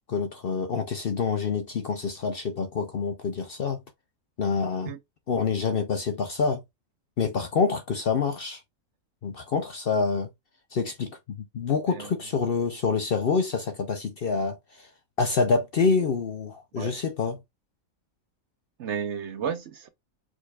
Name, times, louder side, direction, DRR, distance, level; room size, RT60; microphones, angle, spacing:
voice 1, 0.1-3.8 4.4-4.9 5.3-6.6 7.2-8.6 9.2-10.3 10.7-14.9 15.2-17.4, left 5 dB, 55° left, 0.7 m, -27 dB
voice 2, 18.8-19.9, right 7 dB, 65° right, 0.8 m, -32 dB
4.7 x 4.2 x 2.3 m
omnidirectional pair, 1.5 m